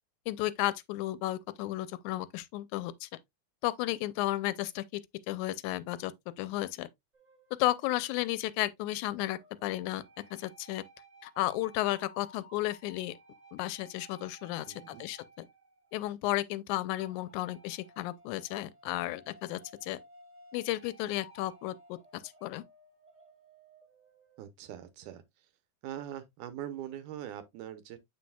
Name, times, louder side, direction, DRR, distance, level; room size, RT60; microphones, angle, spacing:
voice 1, 0.3-3.1 3.6-4.8 5.3-6.1 6.4-6.9 7.6-10.0 10.3-10.8 11.2-13.2 13.5-15.5 15.9-20.0 20.5-22.6, left 16 dB, 85° left, 2.0 m, -33 dB
sound 1, 7.1-8.7 9.2-16.3 17.0-24.4, equal, 15° right, 1.8 m, -57 dB
voice 2, 14.7-15.1 24.4-25.2 25.8-28.0, right 11 dB, 85° right, 2.4 m, -42 dB
7.4 x 6.2 x 2.2 m
omnidirectional pair, 3.5 m